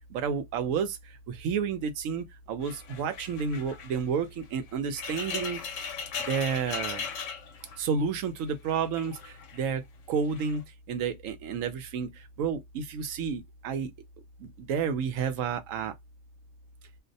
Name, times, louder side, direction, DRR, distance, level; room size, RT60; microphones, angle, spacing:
voice 1, 0.1-6.0 6.3-7.1 7.8-9.8 10.1-13.9 14.4-15.9, right 6 dB, 80° right, 1.0 m, -31 dB
sound 1, 2.6-8.2 8.5-9.6 10.2-10.6, left 6 dB, 75° left, 0.9 m, -38 dB
2.5 x 2.1 x 2.6 m
omnidirectional pair, 1.3 m